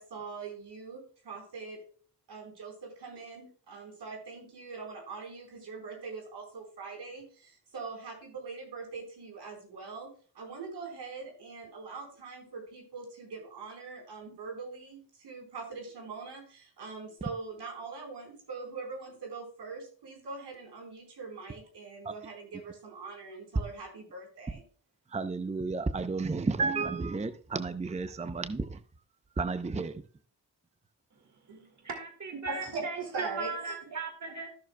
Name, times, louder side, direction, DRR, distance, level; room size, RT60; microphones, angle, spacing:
voice 1, 0.0-1.8 2.3-10.1 10.3-24.6 31.5-31.6 32.5-33.8, right 4 dB, 75° right, 4.3 m, -42 dB
voice 2, 25.1-28.8 29.4-30.0, right 3 dB, 15° right, 0.6 m, -32 dB
voice 3, 31.8-34.5, right 4 dB, 40° right, 1.8 m, -37 dB
14.5 x 6.4 x 2.2 m
cardioid pair, 70°, 42 cm